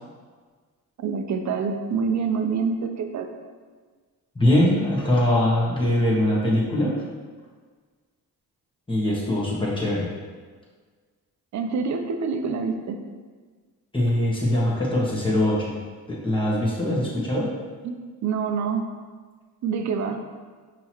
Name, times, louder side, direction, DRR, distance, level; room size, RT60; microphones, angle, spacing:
voice 1, 1.0-3.3 11.5-13.0 18.2-18.8 19.6-20.2, right 5 dB, 45° right, 6 dB, 0.6 m, -26 dB
voice 2, 4.3-6.9 8.9-10.1 13.9-15.8 16.1-17.5, left 1 dB, 15° left, -6 dB, 1.5 m, -22 dB
5.4 x 3.1 x 2.9 m, 1.5 s
supercardioid pair, 75°, 39 cm